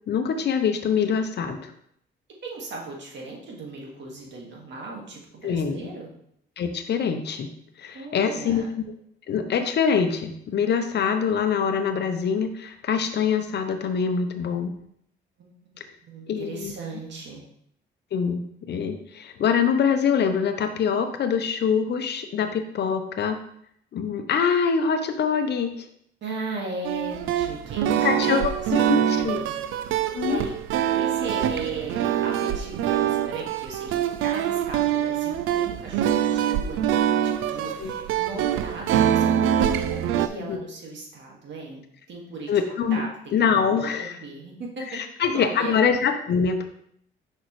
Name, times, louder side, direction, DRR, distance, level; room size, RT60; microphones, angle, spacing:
voice 1, 0.1-1.7 5.4-5.9 6.6-7.5 7.8-8.6 9.3-14.7 16.3-16.7 18.1-23.4 23.9-25.9 28.0-29.5 30.1-30.4 37.8-37.9 40.4-40.6 42.5-43.0 43.3-44.1 44.9-46.7, left 6 dB, 60° left, 7 dB, 0.7 m, -24 dB
voice 2, 2.4-6.1 7.9-8.7 15.4-15.7 16.1-17.4 26.2-30.5 30.9-42.5 42.9-45.0 45.3-45.8, right 3 dB, 65° right, -1 dB, 1.8 m, -38 dB
sound 1, 26.8-40.3, right 10 dB, 85° right, 0.4 m, -24 dB
6.1 x 5.4 x 3.1 m, 0.70 s
cardioid pair, 90°, 20 cm